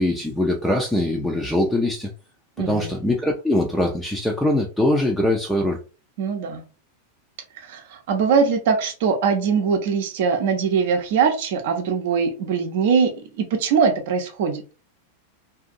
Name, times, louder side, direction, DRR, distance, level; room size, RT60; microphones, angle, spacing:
voice 1, 0.0-2.1 2.6-5.8, left 1 dB, 5° left, 0.4 m, -22 dB
voice 2, 2.6-2.9 6.2-6.6 7.6-13.1 13.4-14.6, right 6 dB, 55° right, 0.6 m, -21 dB
2.6 x 2.5 x 2.5 m
figure-of-eight pair, 90°, 0 cm